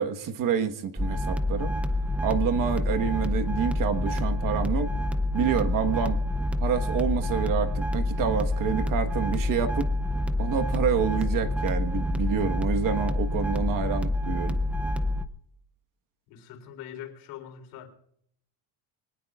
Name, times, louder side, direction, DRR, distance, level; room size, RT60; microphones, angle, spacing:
voice 1, 0.0-1.7 2.2-4.9 5.3-6.2 6.6-9.9 10.4-14.6, right 7 dB, 50° right, 7 dB, 1.4 m, -28 dB
sound 1, 1.0-15.3, left 1 dB, 5° right, 0.5 m, -27 dB
voice 2, 16.3-17.9, left 10 dB, 85° left, 4 dB, 3.9 m, -42 dB
25.0 x 19.0 x 2.4 m, 0.70 s
cardioid pair, 155°, 42 cm